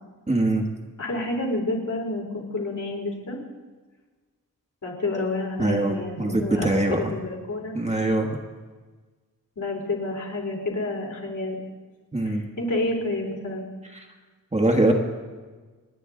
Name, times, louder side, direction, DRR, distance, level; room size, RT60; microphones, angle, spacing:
voice 1, 0.3-0.6 5.6-7.1 7.7-8.3 12.1-12.4 13.9-14.1 14.5-14.9, right 2 dB, 20° right, 2 dB, 1.5 m, -23 dB
voice 2, 1.0-3.4 4.8-7.7 9.6-11.6 12.2-13.7, left 2 dB, 60° left, -1 dB, 3.7 m, -29 dB
29.0 x 9.8 x 3.8 m, 1.4 s
wide cardioid pair, 125°, 35 cm